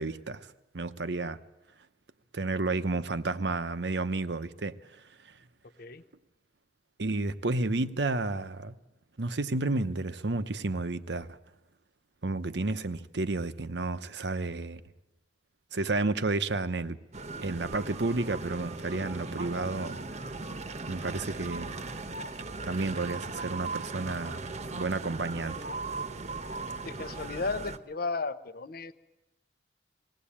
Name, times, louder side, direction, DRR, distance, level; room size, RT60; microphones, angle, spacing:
voice 1, 0.0-1.4 2.3-4.8 7.0-8.7 9.2-11.4 12.2-14.8 15.7-17.0 17.4-20.0 20.9-21.8 22.6-24.4 24.7-25.6, right 3 dB, 70° right, 0.9 m, -31 dB
sound 1, 17.1-27.8, right 3 dB, 40° right, 1.0 m, -38 dB
voice 2, 26.8-28.9, left 4 dB, 55° left, 0.8 m, -34 dB
20.5 x 17.0 x 8.7 m
head